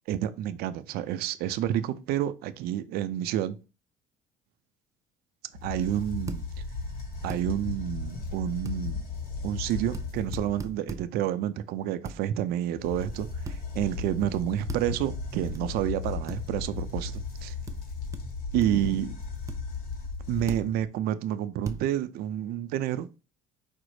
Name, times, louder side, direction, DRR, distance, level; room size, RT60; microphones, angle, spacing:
voice 1, 0.1-3.6 5.6-6.4 7.2-9.0 9.4-17.5 18.5-19.1 20.3-23.1, right 11 dB, 70° right, 0.5 m, -29 dB
sound 1, 5.5-10.7 12.7-20.8, left 4 dB, 60° left, 1.3 m, -36 dB
sound 2, 6.3-6.4 7.3-7.4 8.7-8.8 9.9-10.1 10.3-11.1 12.1-12.2 13.5-13.6 14.7-14.9 15.5-15.6 16.3-16.4 17.7-17.8 18.1-18.2 18.6-18.9 19.5-19.6 20.5-20.7 21.7-21.8, right 3 dB, 20° right, 0.5 m, -37 dB
5.0 x 2.0 x 4.7 m
supercardioid pair, 100°, 17 cm